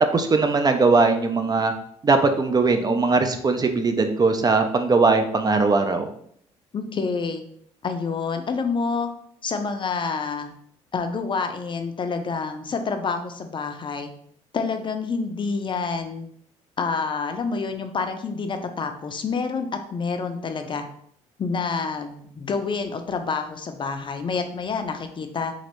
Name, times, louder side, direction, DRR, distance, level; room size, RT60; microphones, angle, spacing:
voice 1, 0.1-1.7 2.0-6.1, right 3 dB, 30° right, 7 dB, 0.4 m, -20 dB
voice 2, 6.7-7.4 7.8-9.1 9.4-10.5 10.9-14.1 14.5-16.3 16.8-20.8 21.4-25.5, left 5 dB, 35° left, 7 dB, 0.4 m, -28 dB
3.0 x 2.5 x 2.9 m, 0.65 s
supercardioid pair, 70°, 14 cm